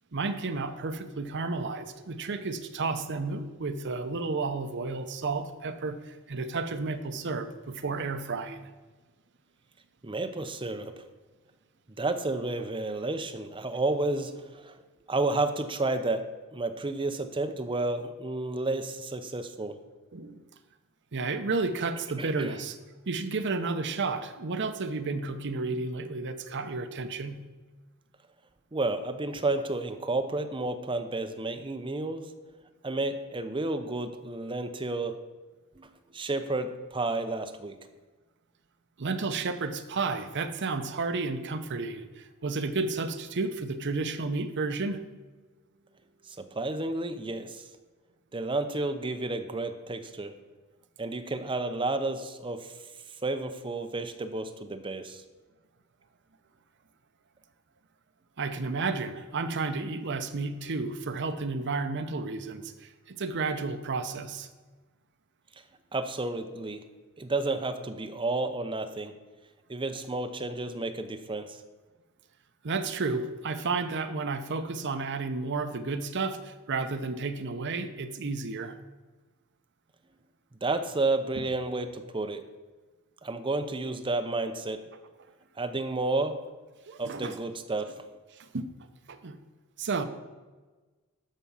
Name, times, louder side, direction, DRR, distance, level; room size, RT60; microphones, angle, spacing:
voice 1, 0.1-8.7 20.1-20.4 21.1-22.8 23.1-27.4 39.0-45.0 58.4-64.5 72.6-78.8 81.4-81.5 86.9-87.3 88.4-88.7 89.1-89.4 89.8-90.0, right 3 dB, 55° right, 9 dB, 0.7 m, -32 dB
voice 2, 10.0-11.0 12.0-14.8 15.1-19.8 22.2-22.6 28.7-32.3 32.8-35.2 35.8-37.8 46.3-47.6 48.3-50.4 51.0-52.7 53.2-55.2 65.9-66.8 67.2-69.1 69.7-71.6 80.6-82.4 83.2-84.8 85.6-86.4 87.0-87.9, right 2 dB, 25° right, 7 dB, 0.7 m, -31 dB
13.0 x 4.8 x 5.6 m, 1.3 s
head